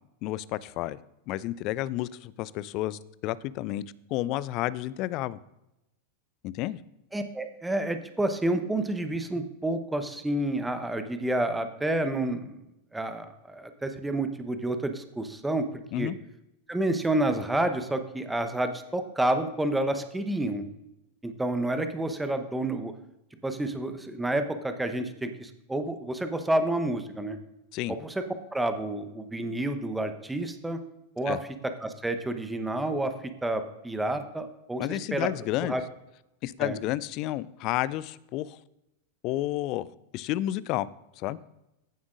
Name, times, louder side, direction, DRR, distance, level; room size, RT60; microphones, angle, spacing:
voice 1, 0.2-1.0 1.3-3.8 4.1-5.4 6.4-6.8 15.9-16.1 27.7-27.9 31.3-31.4 34.8-35.8 36.4-38.6 39.2-39.9 40.1-40.9 41.2-41.4, left 15 dB, 40° left, 20 dB, 0.4 m, -31 dB
voice 2, 7.1-12.6 12.9-15.7 16.0-16.1 16.7-20.6 21.2-22.9 23.4-27.4 27.9-28.2 28.5-30.8 31.2-31.4 31.6-33.1 33.4-35.3 35.6-35.8 36.6-36.8, right 1 dB, 5° right, 8 dB, 0.9 m, -29 dB
15.0 x 7.2 x 2.5 m, 0.91 s
figure-of-eight pair, 90°, 0 cm